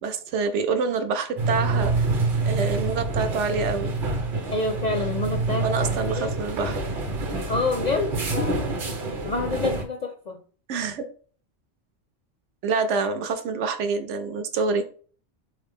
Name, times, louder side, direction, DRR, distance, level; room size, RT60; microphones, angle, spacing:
voice 1, 0.0-2.1 2.5-3.9 5.6-6.8 10.7-11.0 12.6-14.9, right 4 dB, 75° right, 7 dB, 1.0 m, -26 dB
sound 1, 1.4-9.8, right 3 dB, 50° right, 1.0 m, -27 dB
voice 2, 4.5-6.4 7.5-8.6 9.2-10.4, left 3 dB, 55° left, 4 dB, 0.5 m, -28 dB
3.7 x 3.3 x 3.6 m, 0.42 s
omnidirectional pair, 1.3 m